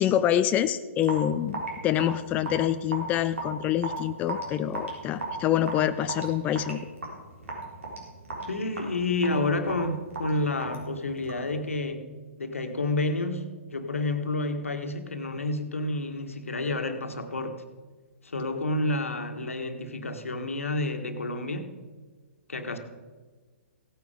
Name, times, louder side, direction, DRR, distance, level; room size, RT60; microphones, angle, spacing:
voice 1, 0.0-6.8, left 11 dB, 20° left, 10 dB, 0.4 m, -26 dB
Raindrop / Drip, 1.0-11.5, right 2 dB, 75° right, 4.4 m, -37 dB
voice 2, 8.5-12.1 12.4-13.4 13.7-17.6 18.2-21.7 22.5-22.8, left 2 dB, 80° left, 7 dB, 1.5 m, -29 dB
16.5 x 9.1 x 5.1 m, 1.4 s
figure-of-eight pair, 125°, 7 cm